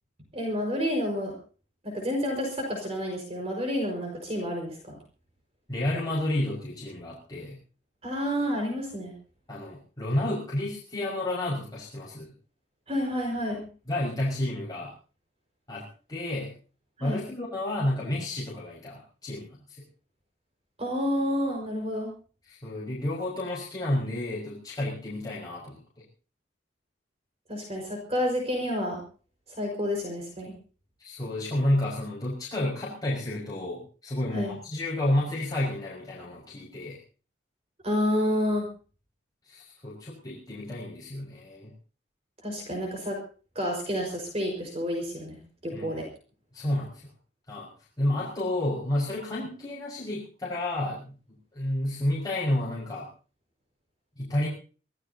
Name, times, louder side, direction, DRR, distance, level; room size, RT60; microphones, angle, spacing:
voice 1, 0.3-1.3 1.8-5.0 8.0-9.1 12.9-13.6 17.0-17.2 20.8-22.1 27.5-29.0 29.5-30.5 34.3-34.5 37.8-38.7 42.4-43.2 43.6-46.1, equal, 35° right, 1 dB, 5.3 m, -29 dB
voice 2, 5.7-7.6 9.5-12.3 13.9-14.9 15.7-16.5 17.0-19.8 22.5-26.0 31.0-37.0 39.4-41.7 45.7-46.0 46.5-47.0 47.5-47.7 48.0-51.2 51.5-53.1 54.2-54.5, left 1 dB, 20° left, -7 dB, 5.6 m, -30 dB
25.5 x 17.0 x 2.9 m, 0.38 s
head